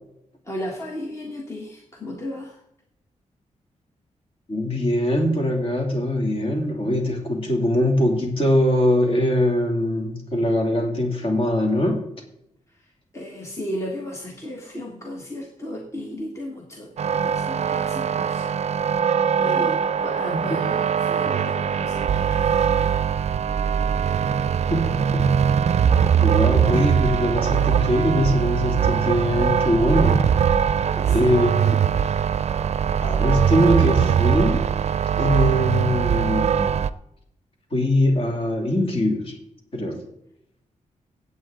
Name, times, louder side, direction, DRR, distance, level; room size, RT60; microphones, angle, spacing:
voice 1, 0.4-2.6 12.7-18.5 19.3-23.0 31.0-31.4, equal, 20° left, 0 dB, 1.5 m, -35 dB
voice 2, 4.5-12.0 20.3-20.4 24.7-25.3 26.2-30.2 31.1-31.8 33.0-34.7 35.2-36.7 37.7-39.4 39.7-40.0, left 1 dB, 45° left, 2 dB, 2.7 m, -22 dB
sound 1, 17.0-36.9, right 8 dB, 60° right, 0.5 m, -21 dB
17.0 x 8.2 x 3.8 m, 0.79 s
wide cardioid pair, 130°, 13 cm